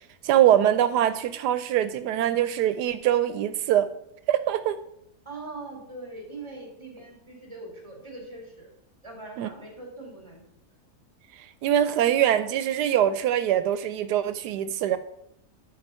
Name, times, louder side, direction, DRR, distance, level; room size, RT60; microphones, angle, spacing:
voice 1, 0.2-3.9 4.3-4.8 9.4-9.5 11.3-15.0, right 11 dB, 90° right, 11 dB, 1.2 m, -23 dB
voice 2, 5.2-8.7 9.0-10.4, right 2 dB, 15° right, -1 dB, 2.7 m, -41 dB
10.0 x 4.5 x 5.5 m, 0.78 s
omnidirectional pair, 1.7 m